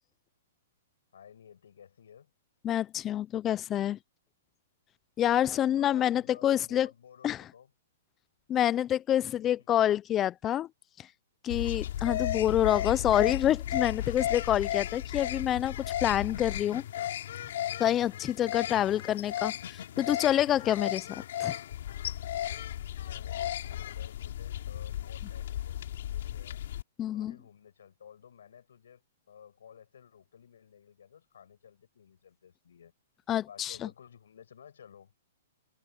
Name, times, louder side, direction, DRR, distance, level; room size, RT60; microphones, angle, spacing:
voice 1, 1.1-2.3 5.5-7.7 9.6-9.7 23.0-26.6 27.1-32.9 33.4-35.1, left 8 dB, 80° left, 7.9 m, -54 dB
voice 2, 2.6-4.0 5.2-6.9 7.2-7.4 8.5-10.7 11.0-11.1 11.4-16.8 17.8-21.6 27.0-27.3 33.3-33.9, left 11 dB, 20° left, 0.5 m, -27 dB
sound 1, 11.5-26.8, left 11 dB, 65° left, 2.9 m, -35 dB
hypercardioid pair, 150°, 0 cm